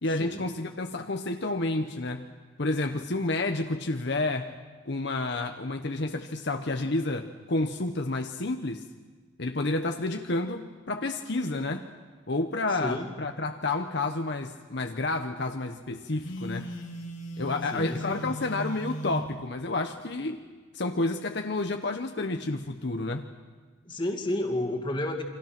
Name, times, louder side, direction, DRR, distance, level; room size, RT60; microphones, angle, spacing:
voice 1, 0.0-2.2 2.6-4.5 4.9-8.8 9.4-11.9 12.3-16.7 17.4-20.4 20.7-23.3, left 2 dB, 60° left, 5 dB, 1.0 m, -30 dB
Telephone, 16.2-19.3, equal, 80° left, 3.2 m, -37 dB
voice 2, 17.7-18.3 23.9-25.2, left 1 dB, 25° left, 3 dB, 2.1 m, -31 dB
29.5 x 25.0 x 6.0 m, 1.4 s
head